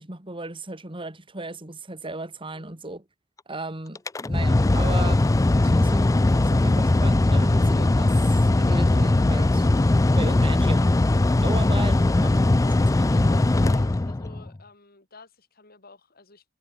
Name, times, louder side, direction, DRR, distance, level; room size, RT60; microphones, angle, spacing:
voice 1, 0.0-3.0 3.5-5.2 5.6-9.7 10.1-10.8 11.4-13.3, right 2 dB, 25° right, 2.4 m, -36 dB
Mechanical fan, 4.0-14.5, left 2 dB, 15° left, 0.4 m, -20 dB
voice 2, 13.1-16.4, left 3 dB, 50° left, 5.6 m, -49 dB
head